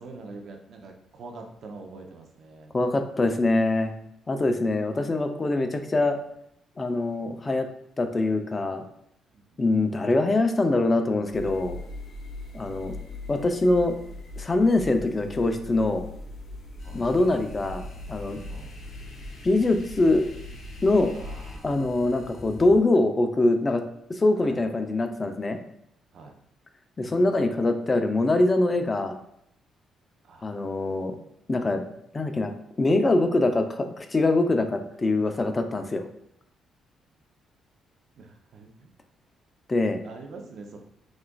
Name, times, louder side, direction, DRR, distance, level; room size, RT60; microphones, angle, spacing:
voice 1, 0.0-2.7 9.3-9.6 16.8-17.0 18.5-18.7 21.2-21.8 24.4-24.7 26.1-26.3 30.3-30.6 38.2-38.9 40.0-40.8, right 3 dB, 60° right, 3 dB, 0.7 m, -44 dB
voice 2, 2.7-3.9 4.3-6.2 6.8-7.7 8.0-8.9 9.6-11.8 12.5-13.0 13.3-14.0 14.4-16.0 16.9-18.4 19.4-20.3 20.8-21.1 21.6-23.8 24.1-25.6 27.0-29.2 30.4-31.2 31.5-31.8 32.1-32.5 32.8-36.0 39.7-40.0, left 2 dB, 30° left, 7 dB, 0.5 m, -23 dB
sound 1, 11.3-21.6, left 2 dB, 65° left, 0.8 m, -40 dB
sound 2, 16.8-22.8, equal, 50° left, 1.4 m, -46 dB
6.1 x 2.5 x 2.3 m, 0.75 s
cardioid pair, 90°, 0 cm